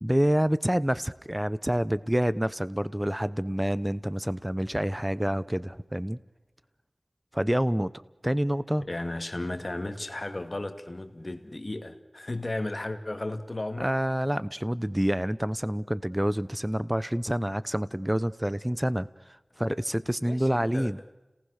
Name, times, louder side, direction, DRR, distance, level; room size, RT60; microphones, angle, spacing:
voice 1, 0.0-6.2 7.3-7.9 8.2-8.8 13.8-19.1 19.6-21.0, equal, 10° right, 0.7 m, -27 dB
voice 2, 8.9-13.9 20.2-20.9, left 2 dB, 45° left, 2.2 m, -34 dB
30.0 x 19.0 x 6.5 m
wide cardioid pair, 45°, 0 cm